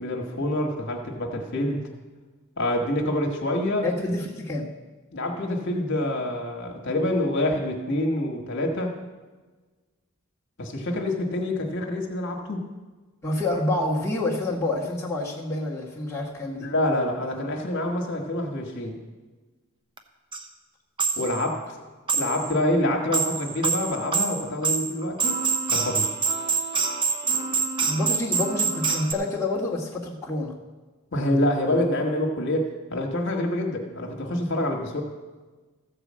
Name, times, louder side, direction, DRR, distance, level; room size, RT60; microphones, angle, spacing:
voice 1, 0.0-1.8 2.6-3.9 5.1-8.9 10.6-12.7 16.6-19.0 21.2-21.6 22.1-26.1 31.1-35.0, left 1 dB, 55° left, 1 dB, 1.4 m, -26 dB
voice 2, 3.8-4.7 13.2-16.7 27.8-30.5, left 2 dB, 10° left, -6 dB, 1.4 m, -28 dB
sound 1, 20.0-20.1 20.3-20.4 21.0-21.5 22.1-22.5 22.9-29.1, right 5 dB, 20° right, 0.7 m, -26 dB
14.0 x 4.9 x 7.4 m, 1.3 s
head